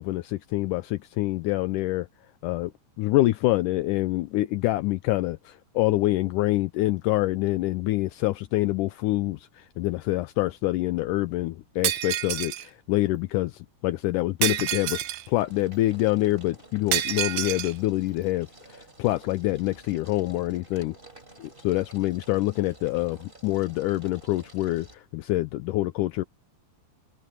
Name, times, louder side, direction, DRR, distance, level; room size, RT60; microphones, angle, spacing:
voice 1, 0.0-2.1 2.4-2.7 3.0-20.9 21.4-26.2, left 17 dB, 80° left, 2.1 m, -26 dB
Shatter, 11.8-12.7 14.4-15.3 16.9-17.7, right 12 dB, 80° right, 1.4 m, -27 dB
sound 1, 12.9-13.4 13.8-25.0, right 2 dB, 15° right, 4.8 m, -52 dB
open air
omnidirectional pair, 3.9 m